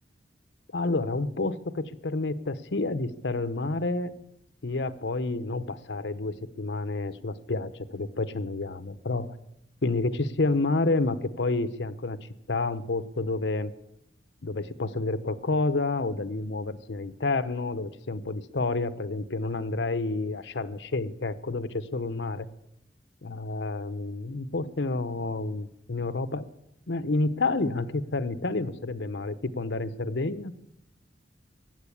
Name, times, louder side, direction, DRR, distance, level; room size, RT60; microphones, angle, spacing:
voice 1, 0.7-4.1 4.6-9.3 9.8-12.2 12.5-13.7 14.4-22.5 23.2-26.5 26.9-30.5, left 3 dB, 85° left, 13 dB, 0.9 m, -29 dB
16.0 x 9.3 x 8.4 m, 0.83 s
head